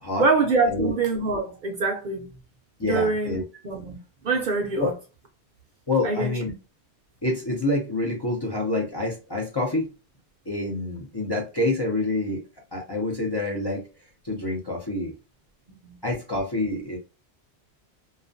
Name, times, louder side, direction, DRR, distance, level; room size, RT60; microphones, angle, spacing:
voice 1, 0.2-2.3 2.8-3.4 3.6-4.0 4.2-4.9 6.0-6.3 15.8-16.0, right 4 dB, 60° right, 0.6 m, -24 dB
voice 2, 2.8-3.4 4.8-4.9 5.9-6.5 7.2-9.9 10.5-12.4 12.7-13.9 14.2-15.1 16.0-17.0, left 2 dB, 30° left, 0.5 m, -27 dB
2.3 x 2.1 x 2.5 m
omnidirectional pair, 1.1 m